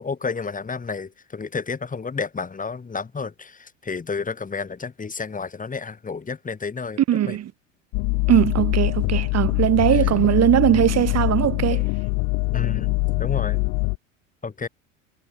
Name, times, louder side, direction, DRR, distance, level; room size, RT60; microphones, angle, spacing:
voice 1, 0.0-7.0 7.3-7.4 9.9-10.3 11.7-11.9 12.5-13.7 14.4-14.7, left 5 dB, 20° left, 6.3 m, -31 dB
voice 2, 7.1-7.5 8.3-11.8, right 11 dB, 40° right, 4.6 m, -20 dB
sound 1, 7.9-14.0, left 31 dB, 60° left, 3.3 m, -23 dB
hypercardioid pair, 80°, 39 cm